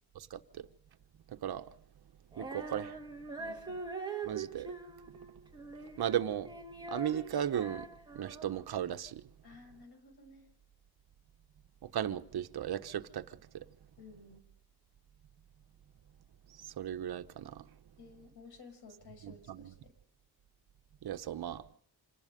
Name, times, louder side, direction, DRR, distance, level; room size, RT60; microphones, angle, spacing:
Female singing, 2.3-8.7, right 4 dB, 10° right, 2.0 m, -43 dB
voice 1, 2.4-2.9 4.2-4.7 6.0-6.5 6.9-7.9 8.1-9.2 11.9-13.2 16.8-17.6 19.2-19.7 21.0-21.6, right 10 dB, 75° right, 1.2 m, -35 dB
voice 2, 3.4-3.8 9.4-10.5 14.0-14.4 18.0-19.9, left 4 dB, 85° left, 5.8 m, -54 dB
26.5 x 19.0 x 5.3 m
wide cardioid pair, 165°, 38 cm